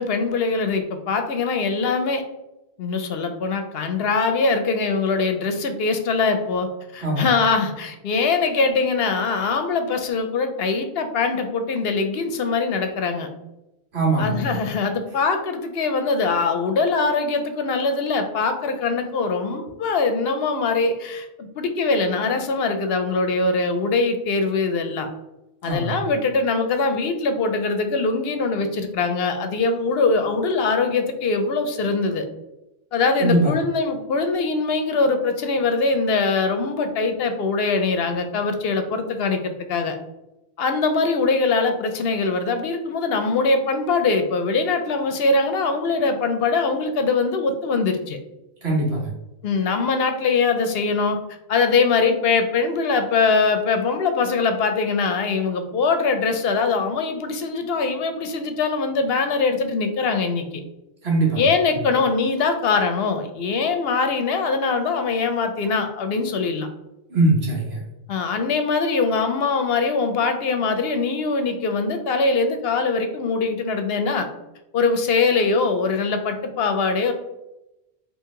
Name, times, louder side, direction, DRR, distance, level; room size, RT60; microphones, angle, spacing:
voice 1, 0.0-2.2 2.8-13.3 14.2-25.1 25.6-32.2 32.9-40.0 40.6-48.2 49.4-51.2 51.5-60.5 61.4-66.7 68.1-74.3 74.7-77.1, left 4 dB, 70° left, 7 dB, 0.8 m, -22 dB
voice 2, 13.9-14.5 25.6-26.0 33.2-33.5 48.6-49.1 61.0-61.4 67.1-67.8, right 2 dB, 70° right, -2 dB, 1.5 m, -21 dB
4.4 x 2.8 x 3.7 m, 0.93 s
omnidirectional pair, 1.1 m